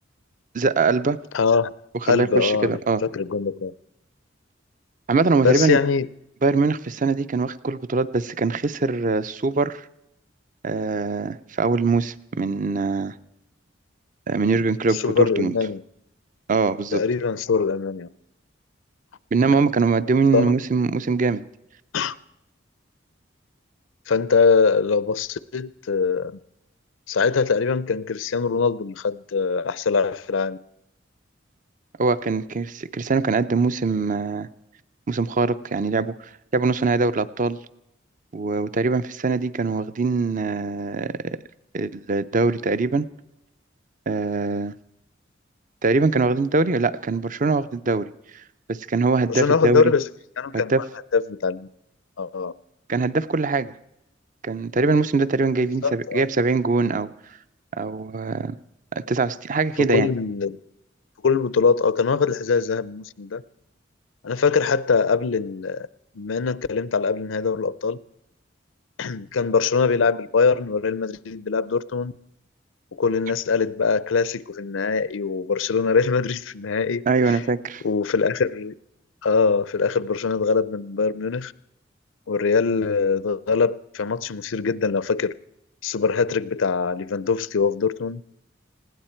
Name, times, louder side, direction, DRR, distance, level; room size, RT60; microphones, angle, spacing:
voice 1, 0.5-1.2 2.1-3.0 5.1-5.8 6.4-9.8 10.6-13.1 14.3-15.5 16.5-17.0 19.3-21.4 32.0-34.5 35.1-36.1 36.5-37.6 38.3-41.4 41.7-43.1 44.1-44.7 45.8-48.1 48.7-49.9 50.5-50.8 52.9-53.7 54.4-57.1 57.8-58.6 58.9-60.1 77.1-77.8, right 3 dB, 40° right, 0.5 m, -22 dB
voice 2, 1.3-1.7 2.1-3.7 5.4-6.1 14.9-15.8 16.9-18.1 20.3-20.5 21.9-22.2 24.1-26.4 27.1-30.6 49.3-50.1 50.4-50.7 51.1-51.7 52.2-52.5 55.8-56.2 59.8-60.6 61.2-63.4 64.2-65.9 66.1-68.0 69.0-72.1 72.9-77.4 77.8-78.7 79.2-81.5 82.3-85.3 85.8-88.2, left 5 dB, 90° left, 0.6 m, -22 dB
20.0 x 16.0 x 4.4 m
head